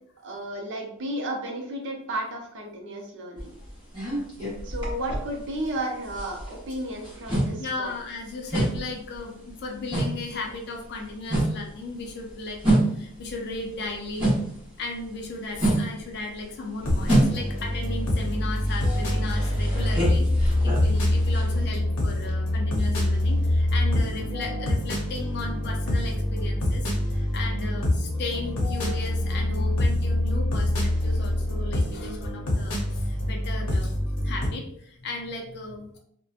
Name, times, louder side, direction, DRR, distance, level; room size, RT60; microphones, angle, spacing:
voice 1, 0.2-3.5 4.6-7.9, right 1 dB, 55° right, 2 dB, 0.5 m, -33 dB
sound 1, 3.4-5.8 6.0-14.7 15.0-21.6, right 1 dB, 20° right, 0.9 m, -27 dB
voice 2, 7.6-14.4 14.8-36.0, left 3 dB, 50° left, 2 dB, 0.4 m, -36 dB
sound 2, 16.8-34.5, left 1 dB, 90° left, 0.7 m, -25 dB
2.7 x 2.1 x 2.4 m, 0.69 s
head